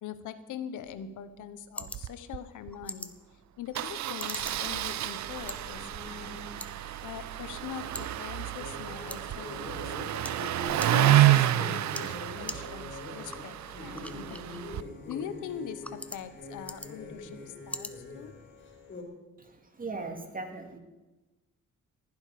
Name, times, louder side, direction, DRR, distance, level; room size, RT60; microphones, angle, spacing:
voice 1, 0.0-3.1 3.6-6.5 7.0-10.3 10.9-14.7 15.1-18.4, left 9 dB, 90° left, 12 dB, 1.1 m, -42 dB
sound 1, 0.9-18.9, left 1 dB, 5° left, 0.9 m, -47 dB
Engine starting, 1.8-2.1 2.3-2.4 2.7-2.8 3.7-14.8, right 13 dB, 70° right, 0.7 m, -29 dB
sound 2, 4.9-19.0, left 2 dB, 40° left, 4.6 m, -44 dB
voice 2, 19.4-20.8, right 3 dB, 30° right, 5 dB, 2.5 m, -39 dB
20.0 x 11.5 x 5.1 m, 1.1 s
cardioid pair, 100°, 30 cm